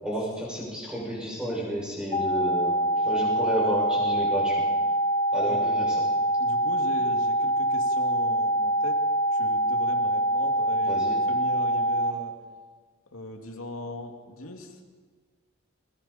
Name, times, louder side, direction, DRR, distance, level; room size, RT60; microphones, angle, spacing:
voice 1, 0.0-4.6 5.3-6.0 10.8-11.2, equal, 5° right, -5 dB, 7.1 m, -31 dB
sound 1, 2.1-12.1, right 1 dB, 25° left, 1.2 m, -25 dB
voice 2, 6.4-9.0 9.3-12.4 13.1-14.8, left 1 dB, 80° left, 3 dB, 2.5 m, -39 dB
29.5 x 23.5 x 4.4 m, 1.5 s
head